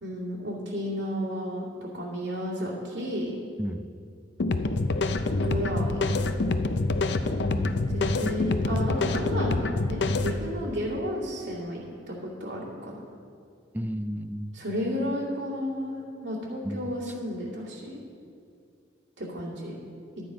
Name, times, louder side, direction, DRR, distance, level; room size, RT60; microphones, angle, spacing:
voice 1, 0.0-3.3 5.4-6.4 7.9-11.8 12.1-13.0 14.5-18.0 19.2-19.7, equal, 90° right, -6 dB, 2.4 m, -32 dB
sound 1, 4.4-10.4, left 2 dB, 70° left, 0.5 m, -26 dB
voice 2, 7.5-8.2 13.7-14.5 16.6-16.9, equal, 10° right, 10 dB, 0.4 m, -33 dB
12.0 x 9.2 x 4.9 m, 2.4 s
head